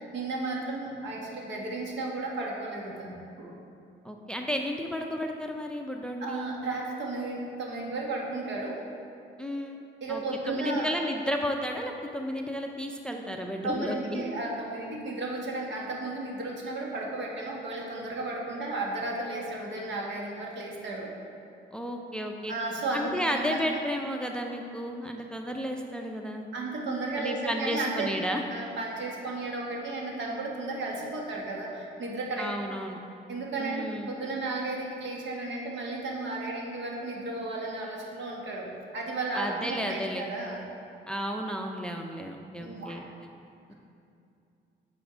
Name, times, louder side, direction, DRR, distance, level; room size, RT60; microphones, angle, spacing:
voice 1, 0.0-3.5 6.2-8.8 10.0-10.9 13.6-21.1 22.5-23.6 26.5-28.1 28.5-32.5 33.3-40.6 42.6-43.0, right 2 dB, 65° right, -2 dB, 1.5 m, -34 dB
voice 2, 4.0-6.5 9.4-10.2 10.5-14.2 21.7-22.5 22.9-26.5 27.2-28.4 32.4-33.0 33.6-34.1 39.3-40.3 41.1-43.0 43.7-43.8, equal, 5° left, 3 dB, 0.5 m, -33 dB
6.4 x 5.9 x 5.0 m, 2.6 s
cardioid pair, 90°, 20 cm